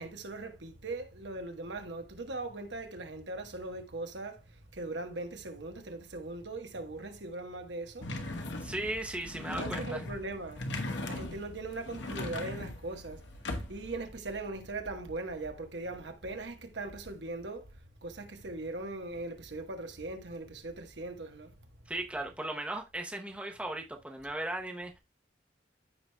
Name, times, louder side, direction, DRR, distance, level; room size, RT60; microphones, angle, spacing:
voice 1, 0.0-8.1 9.6-10.6 11.1-13.3 13.7-17.7 18.0-21.5, right 2 dB, 75° right, 1.2 m, -40 dB
sound 1, 8.0-14.0, left 2 dB, 80° left, 1.1 m, -39 dB
voice 2, 8.6-10.0 21.9-25.0, right 1 dB, 5° right, 0.8 m, -37 dB
14.0 x 4.7 x 2.2 m
head